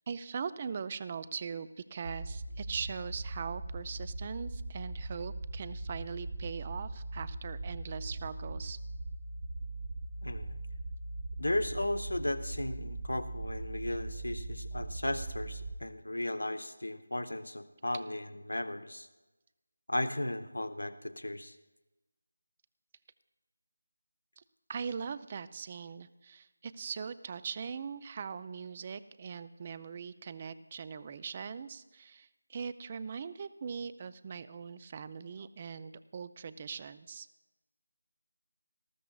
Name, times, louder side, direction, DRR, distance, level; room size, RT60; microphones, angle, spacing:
voice 1, 0.1-8.8 24.4-24.5 24.7-37.3, right 6 dB, 30° right, 15 dB, 0.4 m, -41 dB
sound 1, 2.0-15.8, right 2 dB, 65° right, 1.0 m, -40 dB
voice 2, 10.2-10.6 11.4-19.1 19.9-21.5, left 1 dB, 75° left, 10 dB, 0.8 m, -35 dB
19.0 x 14.5 x 2.3 m, 1.1 s
figure-of-eight pair, 160°, 0 cm